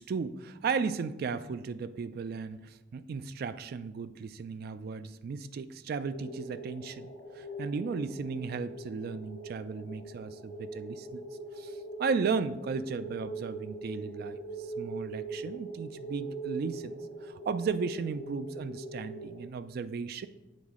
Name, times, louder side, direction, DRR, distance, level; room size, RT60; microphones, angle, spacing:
voice 1, 0.0-11.2 11.6-20.3, right 5 dB, 55° right, 13 dB, 0.3 m, -35 dB
sound 1, 6.1-19.5, right 2 dB, 55° left, 1.2 m, -42 dB
8.8 x 4.0 x 3.6 m, 1.0 s
head